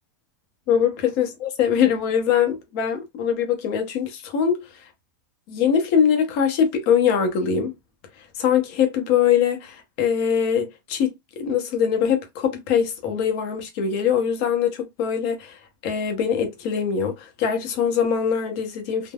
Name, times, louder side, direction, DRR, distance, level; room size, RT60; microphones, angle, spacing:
voice 1, 0.7-4.7 5.5-7.7 8.4-19.1, left 8 dB, 35° left, 0.7 m, -22 dB
3.4 x 2.0 x 2.2 m
supercardioid pair, 175°, 12 cm